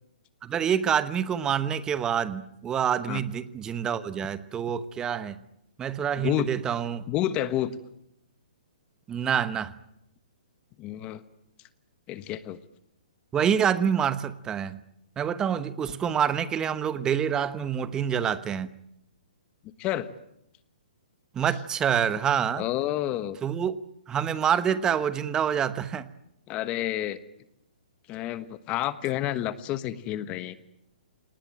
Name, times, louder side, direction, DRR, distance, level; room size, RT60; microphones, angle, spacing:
voice 1, 0.4-5.4 5.8-7.0 9.1-9.7 13.3-14.8 15.2-18.7 21.3-22.6 23.4-23.8 24.1-26.1, right 8 dB, 15° right, 14 dB, 1.0 m, -27 dB
voice 2, 6.2-6.5 7.1-7.7 10.8-11.2 12.1-12.6 19.8-20.1 22.6-23.4 26.5-27.2 28.1-30.6, left 13 dB, 25° left, 14 dB, 1.3 m, -29 dB
27.0 x 19.0 x 9.0 m, 0.79 s
hypercardioid pair, 150°, 5 cm